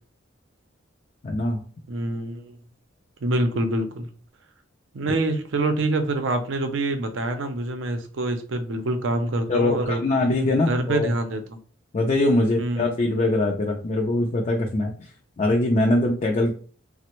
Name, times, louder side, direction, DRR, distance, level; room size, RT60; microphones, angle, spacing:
voice 1, 1.2-1.6 9.5-11.1 11.9-15.1 15.4-16.5, left 2 dB, 35° left, 1 dB, 0.4 m, -22 dB
voice 2, 1.9-2.5 3.2-4.1 4.9-10.0 10.6-11.6 12.6-12.9, right 2 dB, 70° right, 7 dB, 0.5 m, -26 dB
3.3 x 2.0 x 3.0 m, 0.41 s
head